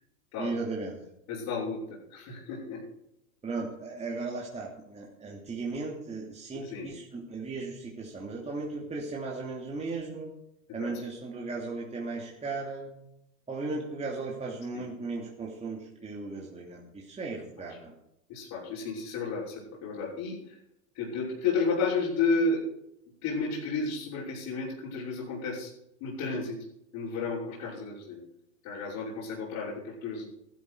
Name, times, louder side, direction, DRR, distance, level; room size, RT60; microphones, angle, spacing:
voice 1, 0.4-1.0 3.4-10.3 10.7-12.9 13.5-17.9, right 3 dB, 15° right, -2 dB, 2.9 m, -36 dB
voice 2, 1.3-1.8 2.1-2.8 6.6-6.9 10.7-10.9 14.7-14.8 18.3-20.6 20.9-22.6 23.2-25.7 26.0-26.6 26.9-28.2 28.6-30.3, left 4 dB, 50° left, -7 dB, 6.3 m, -32 dB
15.0 x 13.0 x 5.1 m, 0.82 s
hypercardioid pair, 105°, 40 cm